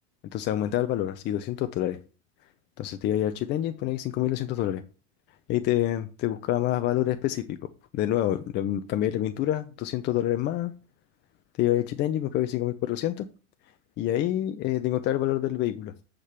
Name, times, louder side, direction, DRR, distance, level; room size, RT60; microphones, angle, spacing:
voice 1, 0.3-2.0 2.8-4.8 5.5-7.6 7.9-10.7 11.6-13.3 14.0-15.9, left 13 dB, 30° left, 0.6 m, -27 dB
8.3 x 5.1 x 4.4 m
hypercardioid pair, 100°, 36 cm